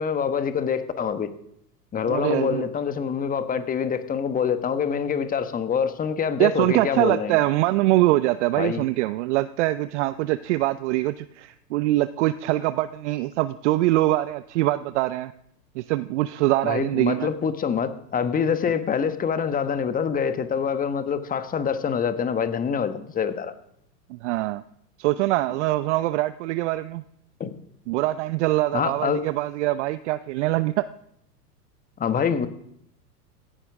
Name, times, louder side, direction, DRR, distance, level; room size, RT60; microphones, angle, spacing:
voice 1, 0.0-1.3 1.9-7.4 8.6-8.8 16.6-23.5 27.4-27.5 28.7-29.2 32.0-32.5, left 7 dB, 15° left, 1.2 m, -25 dB
voice 2, 2.1-2.7 6.4-15.3 15.8-17.3 24.1-24.6 25.0-27.0 27.9-30.9, right 17 dB, 45° right, 0.6 m, -23 dB
16.5 x 15.0 x 3.6 m
hypercardioid pair, 105°, 48 cm